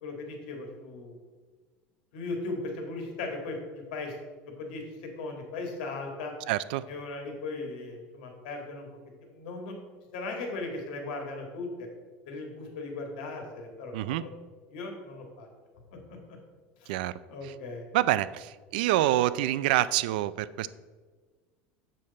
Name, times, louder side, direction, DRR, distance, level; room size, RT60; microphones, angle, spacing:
voice 1, 0.0-1.2 2.1-4.2 4.6-6.3 6.9-8.9 9.2-9.8 10.1-11.9 12.3-14.3 14.7-15.5 15.9-16.0 16.3-16.4 16.8-16.9 17.3-17.9, left 3 dB, 80° left, 2 dB, 2.0 m, -37 dB
voice 2, 6.5-6.8 13.9-14.2 16.9-17.1 17.9-20.7, right 14 dB, 85° right, 17 dB, 0.3 m, -26 dB
7.6 x 6.5 x 4.2 m, 1.4 s
cardioid pair, 175°, 5 cm